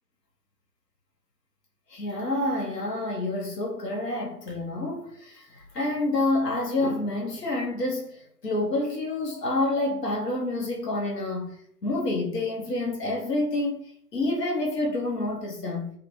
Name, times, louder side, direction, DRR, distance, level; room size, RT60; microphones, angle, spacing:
voice 1, 1.9-15.9, left 2 dB, 85° left, 0.8 m, -28 dB
2.4 x 2.1 x 3.0 m
figure-of-eight pair, 135°, 47 cm